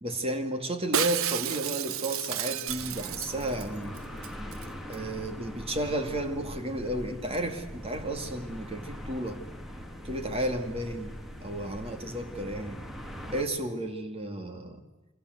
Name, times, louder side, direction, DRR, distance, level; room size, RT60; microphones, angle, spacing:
voice 1, 0.0-4.0 4.9-9.4 10.0-12.8 13.3-14.8, right 1 dB, 25° right, 6 dB, 2.4 m, -33 dB
Shatter, 0.9-3.7 4.0-4.1 4.2-4.7 4.9-5.0, right 10 dB, 75° right, 0.8 m, -31 dB
sound 1, 2.7-13.4, equal, ahead, 2.5 m, -41 dB
29.5 x 24.0 x 8.1 m, 1.1 s
head